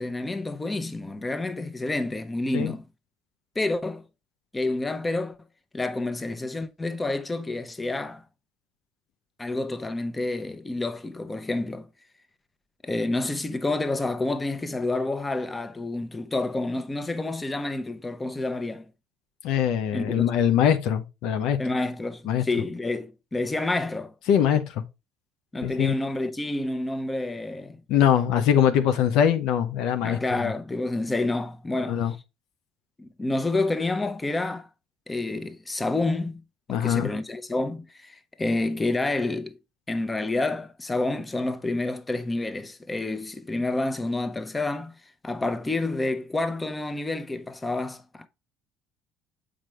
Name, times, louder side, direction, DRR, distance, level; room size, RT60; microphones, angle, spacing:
voice 1, 0.0-2.8 3.5-4.0 4.5-5.4 5.7-8.2 9.4-11.9 12.8-18.8 19.9-20.3 21.6-24.1 25.5-27.8 30.0-32.0 33.0-34.7 35.1-36.4 36.7-39.5 39.9-45.0 45.2-48.3, left 2 dB, 20° left, 1.0 m, -29 dB
voice 2, 19.4-21.6 22.3-22.4 24.3-24.8 25.6-25.9 27.9-30.5 31.9-32.1 36.7-37.1, left 9 dB, 65° left, 0.8 m, -22 dB
7.4 x 5.1 x 3.3 m
hypercardioid pair, 60°, 0 cm